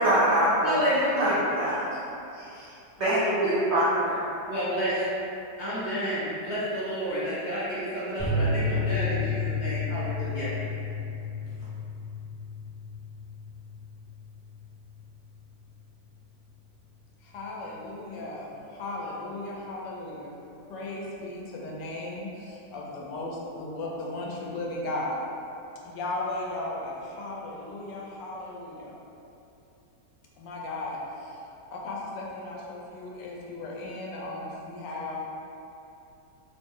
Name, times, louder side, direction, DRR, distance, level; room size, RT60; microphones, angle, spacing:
voice 1, 0.0-0.8 1.1-1.7 3.0-4.2, right 1 dB, 75° right, -9 dB, 0.6 m, -24 dB
voice 2, 0.6-1.3 3.0-3.6 4.5-5.0 5.6-10.5, equal, 60° left, -10 dB, 0.7 m, -30 dB
sound 1, 8.2-15.3 15.5-15.7 16.0-16.1, left 3 dB, 5° left, 0.5 m, -32 dB
voice 3, 17.2-20.3 20.7-25.2 25.8-29.0 30.4-31.3 31.7-35.2, left 2 dB, 85° left, -3 dB, 1.3 m, -36 dB
3.3 x 2.0 x 3.5 m, 2.8 s
omnidirectional pair, 1.9 m